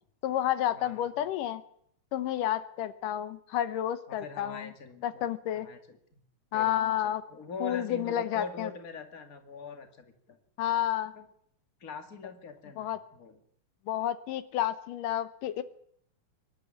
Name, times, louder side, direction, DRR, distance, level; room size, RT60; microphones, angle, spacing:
voice 1, 0.2-1.6 2.1-4.7 5.0-5.7 6.5-7.2 7.6-8.7 10.6-11.1 12.8-13.0 13.9-15.6, left 11 dB, 90° left, 11 dB, 2.6 m, -30 dB
voice 2, 0.7-1.2 4.1-5.2 5.5-6.2 6.5-10.4 11.1-11.2 11.8-13.4, left 4 dB, 30° left, 5 dB, 2.3 m, -43 dB
24.0 x 11.5 x 9.6 m, 0.69 s
omnidirectional pair, 3.7 m